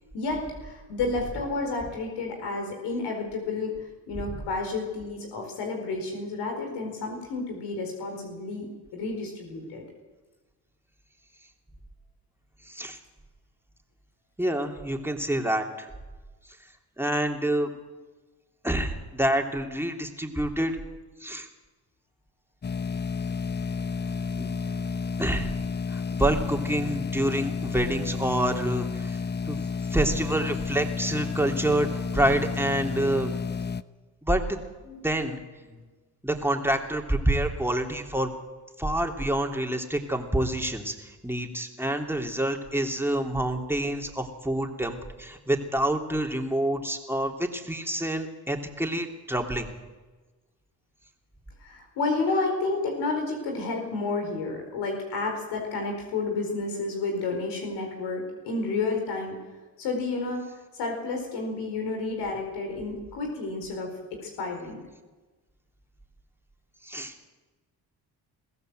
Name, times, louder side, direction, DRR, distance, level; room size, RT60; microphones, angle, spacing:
voice 1, 0.1-3.7 4.1-9.8 34.8-35.0 35.7-35.8 51.6-59.4 59.8-64.8, left 3 dB, 90° left, 2 dB, 4.6 m, -31 dB
voice 2, 12.7-13.0 14.4-15.9 17.0-17.7 18.6-20.8 21.2-21.5 24.4-24.5 25.2-25.5 25.9-29.2 29.5-29.6 29.9-33.3 34.2-34.6 35.0-35.4 36.2-38.3 38.8-49.7 66.8-67.1, right 1 dB, 5° right, 3 dB, 3.1 m, -27 dB
sound 1, 22.6-33.8, left 5 dB, 25° left, 0.7 m, -31 dB
22.0 x 15.5 x 7.9 m, 1.3 s
supercardioid pair, 65°, 39 cm